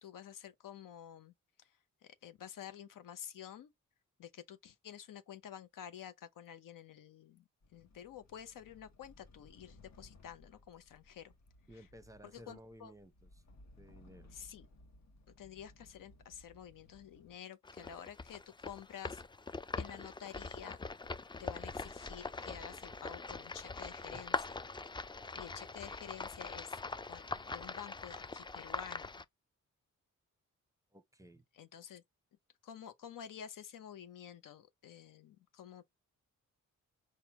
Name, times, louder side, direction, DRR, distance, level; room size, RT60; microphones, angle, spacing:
voice 1, 0.0-1.3 1.6-3.7 4.2-11.3 11.7-11.9 12.2-12.9 14.3-14.7 15.4-19.2 19.8-20.8 21.4-24.6 25.4-26.8 27.1-29.2 31.5-32.0 32.6-35.8, left 9 dB, 75° left, 0.8 m, -50 dB
sound 1, 7.6-17.4, left 2 dB, 55° left, 1.1 m, -61 dB
voice 2, 11.7-13.1 13.8-14.3 24.1-24.2 30.9-31.4, right 1 dB, 10° right, 0.8 m, -55 dB
sound 2, 17.6-29.2, left 3 dB, 15° left, 0.4 m, -42 dB
4.4 x 2.4 x 3.5 m
supercardioid pair, 55°, 33 cm